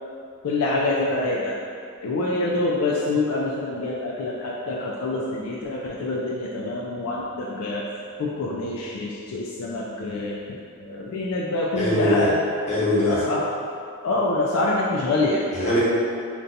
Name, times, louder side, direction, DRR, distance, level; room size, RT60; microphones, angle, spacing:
voice 1, 0.4-1.6 2.0-7.9 8.2-12.5 13.1-13.5 14.0-15.5, left 2 dB, 70° left, -4 dB, 0.3 m, -26 dB
voice 2, 11.7-12.3 12.7-13.2 15.5-15.8, left 1 dB, 30° left, -9 dB, 0.9 m, -21 dB
2.6 x 2.2 x 3.9 m, 2.3 s
head